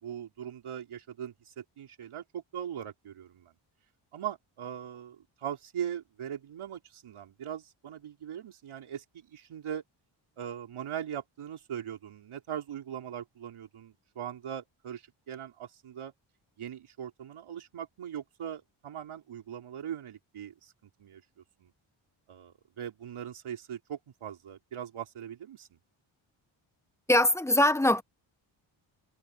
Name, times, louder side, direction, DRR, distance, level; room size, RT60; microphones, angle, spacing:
voice 1, 0.0-3.5 4.1-9.8 10.4-16.1 16.6-20.7 21.0-21.2 21.6-21.7 22.3-25.7, right 9 dB, 85° right, 4.2 m, -40 dB
voice 2, 27.1-28.0, left 1 dB, 5° left, 1.0 m, -22 dB
wide cardioid pair, 110°, 48 cm